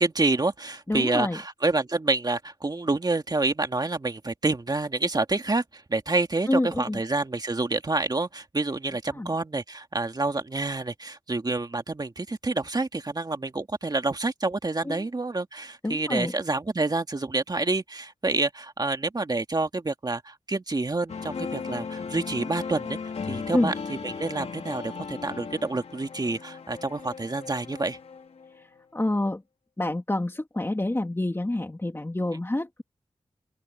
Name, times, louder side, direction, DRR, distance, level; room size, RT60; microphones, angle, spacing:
voice 1, 0.0-23.0 23.2-28.0, right 3 dB, 40° right, 2.1 m, -28 dB
voice 2, 0.9-1.4 6.5-7.0 9.1-9.3 14.8-15.1 15.8-16.3 23.5-23.7 28.5-28.7 28.9-29.4 29.8-32.8, left 1 dB, 25° left, 2.8 m, -27 dB
sound 1, 21.1-28.6, left 5 dB, 85° left, 3.0 m, -37 dB
open air
cardioid pair, 55°, 11 cm